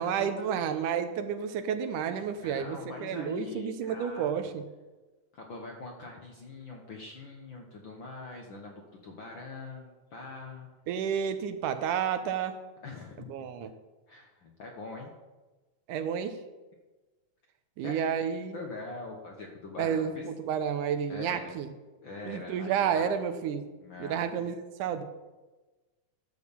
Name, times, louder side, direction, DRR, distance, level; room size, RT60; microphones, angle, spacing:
voice 1, 0.0-4.6 10.9-12.6 13.3-13.7 15.9-16.4 17.8-18.7 19.8-21.7 22.3-23.7 24.0-25.0, right 8 dB, 80° right, 9 dB, 2.3 m, -31 dB
voice 2, 2.4-4.3 5.3-10.7 12.8-13.7 14.1-15.1 17.8-18.0 18.5-20.2 21.1-21.5 22.0-23.1 23.8-24.5, left 3 dB, 55° left, 1 dB, 1.4 m, -43 dB
12.0 x 6.4 x 7.2 m, 1.2 s
omnidirectional pair, 3.6 m